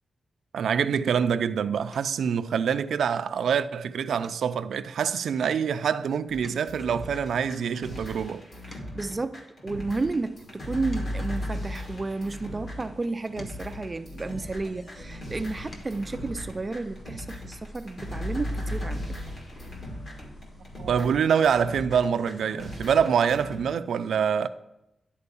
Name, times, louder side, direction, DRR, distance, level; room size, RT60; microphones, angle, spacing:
voice 1, 0.5-8.5 20.8-24.5, right 7 dB, 90° right, 0.4 m, -25 dB
sound 1, 1.9-2.3 2.8-3.2 3.5-3.7 4.2-6.0 6.3-9.2 9.8-12.3 13.0-14.8 15.3-16.1 17.5-17.6 17.9-18.0, left 1 dB, 35° left, 1.1 m, -54 dB
sound 2, 6.3-23.6, left 1 dB, 50° left, 2.2 m, -37 dB
voice 2, 8.7-19.0, right 3 dB, 20° right, 0.3 m, -32 dB
sound 3, 9.7-21.1, left 1 dB, 75° left, 2.9 m, -50 dB
11.0 x 4.4 x 7.0 m
wide cardioid pair, 180°, 0 cm